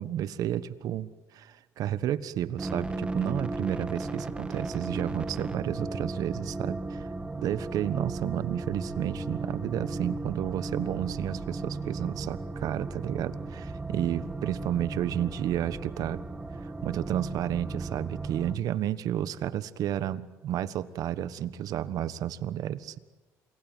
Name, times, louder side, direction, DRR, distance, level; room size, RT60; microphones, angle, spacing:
voice 1, 0.0-7.1 7.4-16.2 16.6-23.0, right 11 dB, 70° right, 14 dB, 1.4 m, -31 dB
sound 1, 2.6-18.6, right 3 dB, 15° right, 2.0 m, -36 dB
28.0 x 21.0 x 9.2 m, 1.2 s
cardioid pair, 105°, 7 cm